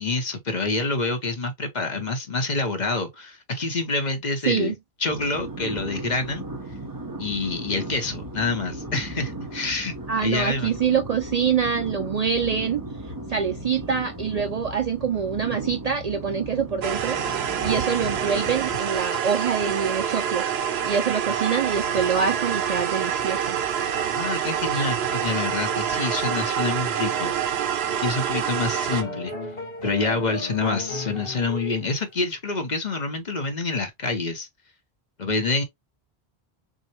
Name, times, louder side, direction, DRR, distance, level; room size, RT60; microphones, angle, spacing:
voice 1, 0.0-6.4 7.2-9.9 10.2-10.7 24.1-27.3 28.0-29.3 29.8-34.5 35.2-35.6, left 3 dB, 45° left, 1.0 m, -27 dB
sound 1, 5.1-18.8, right 1 dB, 20° right, 0.9 m, -36 dB
voice 2, 10.1-12.8 13.3-17.2 17.6-20.4 20.8-23.6, right 6 dB, 55° right, 0.5 m, -25 dB
sound 2, 16.8-29.0, right 8 dB, 85° right, 0.9 m, -26 dB
sound 3, 17.6-18.3 18.6-18.8 19.1-19.2 19.5-19.8 20.8-20.9 21.2-27.6 28.2-28.3 28.9-31.8, left 1 dB, 65° left, 1.8 m, -38 dB
6.4 x 2.2 x 2.9 m
omnidirectional pair, 1.0 m